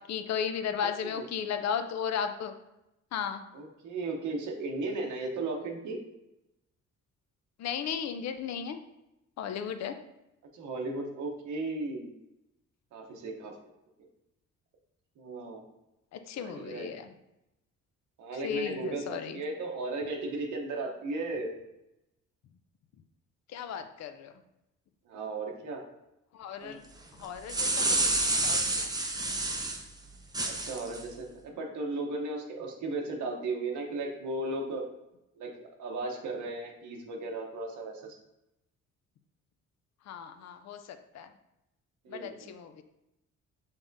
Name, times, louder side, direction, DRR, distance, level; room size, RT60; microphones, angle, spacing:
voice 1, 0.1-2.5 3.1-3.4 7.6-8.8 9.4-9.9 16.1-17.1 18.4-19.4 23.5-24.3 26.3-26.8 27.2-28.9 40.1-41.3 42.1-42.8, left 7 dB, 60° left, 8 dB, 0.5 m, -35 dB
voice 2, 0.8-1.3 3.5-6.0 10.5-12.1 12.9-13.5 15.2-15.6 16.4-16.9 18.2-21.5 25.1-25.8 26.6-26.8 30.4-34.8 35.4-38.2 42.0-42.5, right 2 dB, 75° right, 1 dB, 0.9 m, -36 dB
sound 1, 27.2-29.8 30.3-31.0, right 2 dB, 15° right, 0.6 m, -28 dB
5.4 x 3.5 x 2.6 m, 0.89 s
cardioid pair, 90°, 30 cm